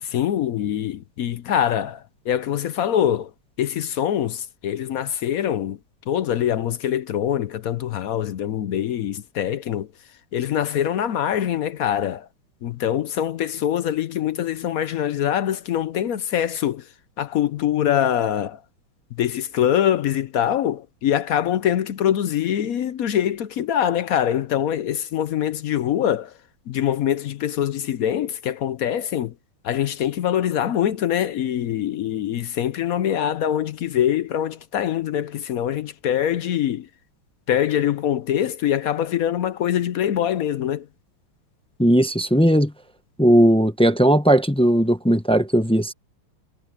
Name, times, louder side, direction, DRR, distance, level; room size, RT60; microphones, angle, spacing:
voice 1, 0.0-3.3 3.6-5.8 6.1-9.9 10.3-12.3 12.6-16.8 17.2-18.6 19.2-26.3 26.7-29.3 29.6-36.9 37.5-40.9, left 10 dB, 65° left, 0.8 m, -24 dB
voice 2, 41.8-42.7 43.2-45.9, equal, 10° left, 0.3 m, -17 dB
omnidirectional pair, 2.2 m